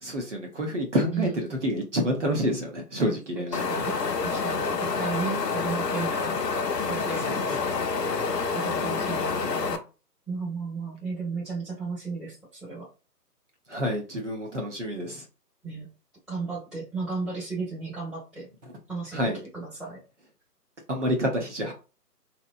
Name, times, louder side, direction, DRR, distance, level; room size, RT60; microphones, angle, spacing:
voice 1, 0.0-3.7 7.2-7.4 8.7-9.2 13.7-15.2 19.1-19.4 20.9-21.7, equal, 50° right, 1 dB, 0.6 m, -28 dB
Wind, 3.5-9.8, left 4 dB, 80° left, 0.6 m, -28 dB
voice 2, 3.6-6.4 6.9-7.8 8.5-9.8 10.3-12.9 15.6-15.9 16.3-18.5 18.9-20.0, right 4 dB, ahead, -22 dB, 0.6 m, -34 dB
2.8 x 2.0 x 2.4 m, 0.32 s
figure-of-eight pair, 155°, 49 cm